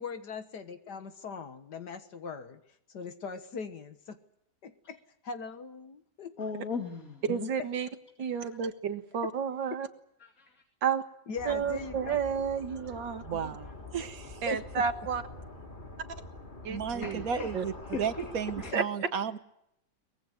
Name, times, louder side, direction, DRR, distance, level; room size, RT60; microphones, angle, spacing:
voice 1, 0.0-2.6 2.9-4.2 4.6-6.3 11.3-12.2 14.5-14.6 17.3-17.5 18.7-18.8, left 4 dB, 65° left, 9 dB, 2.0 m, -40 dB
voice 2, 6.4-7.5 10.2-10.5 17.0-17.5 18.6-18.7, left 5 dB, 50° left, 4 dB, 2.9 m, -38 dB
voice 3, 7.3-7.9 8.2-9.9 10.8-11.0 11.5-13.6 14.4-15.2 16.6-17.3 17.5-17.6 17.9-18.0 18.7-18.8, right 7 dB, 85° right, 8 dB, 2.3 m, -31 dB
sound 1, 11.3-18.7, left 2 dB, 25° left, 2.7 m, -45 dB
voice 4, 13.2-14.5 16.7-17.7 18.0-19.4, right 7 dB, 55° right, 11 dB, 1.6 m, -34 dB
23.5 x 21.5 x 8.0 m, 0.77 s
omnidirectional pair, 1.9 m